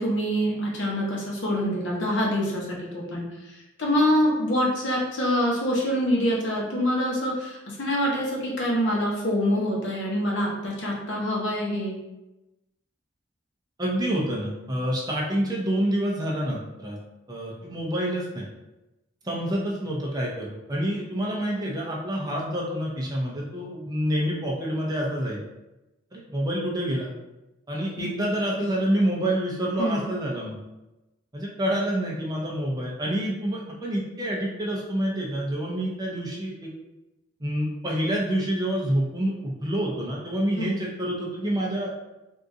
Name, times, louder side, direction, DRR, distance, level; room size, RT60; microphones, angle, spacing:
voice 1, 0.0-3.3 3.8-12.0 28.0-28.1 28.6-28.7 29.8-30.0 40.6-40.7, equal, 65° left, -3 dB, 1.0 m, -25 dB
voice 2, 13.8-17.0 17.3-18.5 19.2-25.4 26.1-27.1 27.7-30.6 31.3-36.7 37.4-42.0, right 1 dB, 20° right, -3 dB, 0.6 m, -27 dB
3.6 x 2.5 x 2.7 m, 0.98 s
head